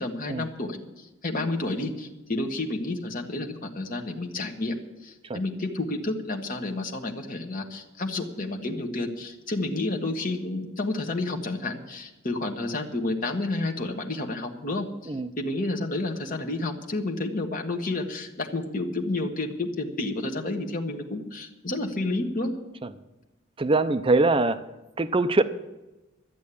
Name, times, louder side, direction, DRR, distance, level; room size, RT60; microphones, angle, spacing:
voice 1, 0.0-4.8 5.0-15.1 15.4-22.5, left 2 dB, 40° left, 3 dB, 1.4 m, -30 dB
voice 2, 23.6-24.6 25.0-25.4, right 2 dB, 25° right, 8 dB, 0.5 m, -22 dB
12.5 x 8.3 x 8.4 m, 1.1 s
head